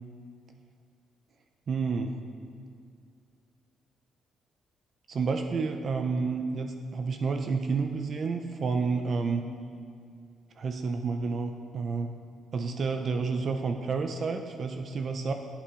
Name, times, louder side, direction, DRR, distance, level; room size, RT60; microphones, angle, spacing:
voice 1, 1.7-2.1 5.1-9.4 10.6-12.1 12.5-15.3, right 4 dB, 50° right, 5 dB, 0.4 m, -30 dB
8.2 x 8.2 x 2.4 m, 2.3 s
cardioid pair, 90°, 0 cm